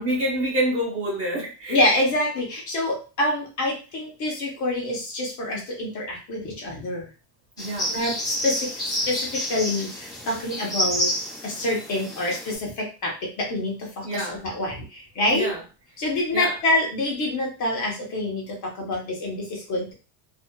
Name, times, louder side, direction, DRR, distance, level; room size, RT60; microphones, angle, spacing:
voice 1, 0.0-1.8 7.6-7.9 14.0-14.4 15.3-15.6 16.3-16.5, right 1 dB, 30° right, -2 dB, 0.9 m, -27 dB
voice 2, 1.7-7.1 7.9-11.1 11.4-15.5 16.0-19.9, left 1 dB, 40° left, -1 dB, 0.9 m, -26 dB
sound 1, 7.6-12.5, equal, 10° left, 0.8 m, -29 dB
2.6 x 2.3 x 2.2 m, 0.32 s
cardioid pair, 150°, 47 cm